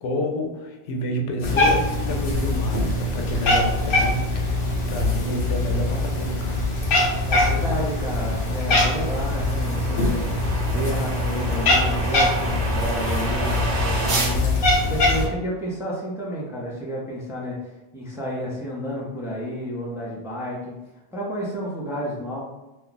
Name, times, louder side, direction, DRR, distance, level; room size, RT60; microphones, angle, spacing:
voice 1, 0.0-4.6 4.9-6.6, equal, 90° left, 3 dB, 0.9 m, -29 dB
Cat, 1.4-15.3, left 2 dB, 55° left, 0.8 m, -23 dB
sound 1, 5.8-14.4, right 2 dB, 55° right, 0.6 m, -32 dB
voice 2, 7.3-10.2 10.6-20.7 21.1-22.4, equal, 5° right, -4 dB, 0.5 m, -31 dB
2.9 x 2.3 x 3.8 m, 1.1 s
omnidirectional pair, 1.2 m